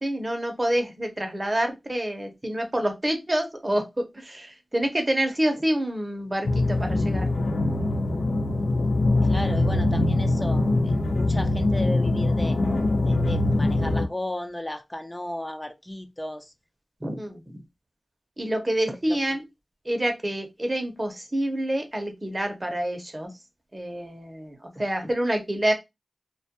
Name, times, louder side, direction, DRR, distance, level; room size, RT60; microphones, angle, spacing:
voice 1, 0.0-7.3 17.0-17.6 18.4-19.4 19.8-23.3 23.7-25.7, right 1 dB, 30° right, 0.6 m, -27 dB
sound 1, 6.4-14.1, left 2 dB, 85° left, 0.4 m, -23 dB
voice 2, 9.2-12.6 13.0-16.5 19.1-19.2, left 1 dB, 15° left, 0.4 m, -35 dB
2.2 x 2.1 x 2.8 m
cardioid pair, 45°, 0 cm